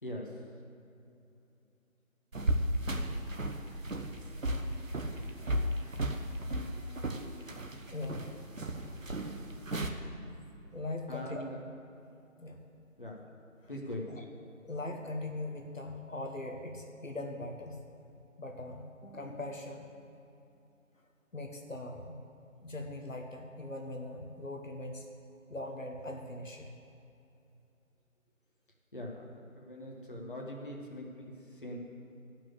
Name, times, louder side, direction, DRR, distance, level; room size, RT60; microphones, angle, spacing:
voice 1, 0.0-0.3 11.1-11.6 13.0-13.2 13.7-14.1 28.9-31.8, left 1 dB, 40° left, -1 dB, 1.4 m, -42 dB
sound 1, 2.3-9.9, right 1 dB, 70° right, 1.1 m, -35 dB
voice 2, 7.9-8.3 9.9-10.0 10.7-11.4 12.4-12.6 14.1-14.2 14.6-17.8 18.4-19.9 21.3-22.2 22.6-25.1 25.5-26.7, left 2 dB, 65° left, 2 dB, 1.2 m, -40 dB
12.0 x 6.1 x 8.4 m, 2.8 s
figure-of-eight pair, 175°, 41 cm